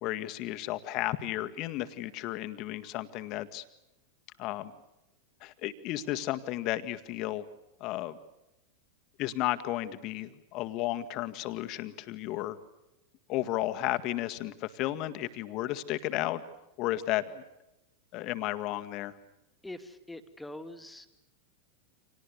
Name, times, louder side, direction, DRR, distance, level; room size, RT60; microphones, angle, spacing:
voice 1, 0.0-3.6 4.4-4.7 5.4-7.5 7.8-8.2 9.2-12.6 13.3-16.4 16.8-17.4 18.1-19.2, left 15 dB, 40° left, 10 dB, 1.9 m, -33 dB
voice 2, 19.6-21.1, left 1 dB, 5° left, 9 dB, 2.5 m, -43 dB
30.0 x 27.0 x 6.9 m, 0.95 s
figure-of-eight pair, 90°, 0 cm